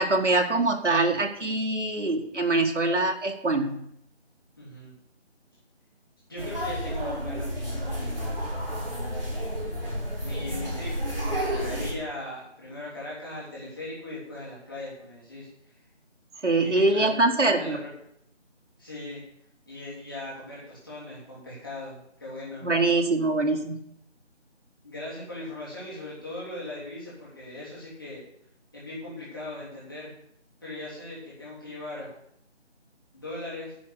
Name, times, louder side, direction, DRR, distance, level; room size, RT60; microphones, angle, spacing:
voice 1, 0.0-3.8 16.4-17.8 22.6-23.8, right 2 dB, 85° right, 3 dB, 1.8 m, -24 dB
voice 2, 4.6-4.9 6.3-8.3 10.2-11.0 11.4-15.5 16.6-17.2 17.5-17.9 18.8-19.2 19.7-22.7 24.8-28.2 28.7-30.1 30.6-32.1 33.1-33.8, left 1 dB, 20° left, -8 dB, 3.1 m, -39 dB
sound 1, 6.4-11.9, equal, 50° right, 4.5 m, -31 dB
10.0 x 5.0 x 8.1 m, 0.72 s
figure-of-eight pair, 180°, 35 cm